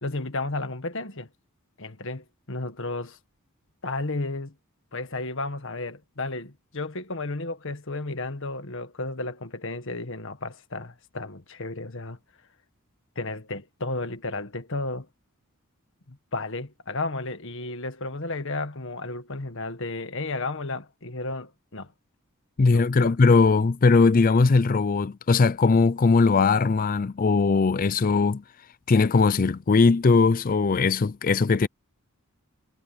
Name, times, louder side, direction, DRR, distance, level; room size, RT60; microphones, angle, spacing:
voice 1, 0.0-1.3 1.8-3.2 3.8-4.5 4.9-12.2 13.2-15.1 16.1-21.9 22.6-23.1, left 2 dB, 60° left, 1.7 m, -33 dB
voice 2, 22.6-28.4 28.9-31.7, left 4 dB, 40° left, 0.4 m, -20 dB
head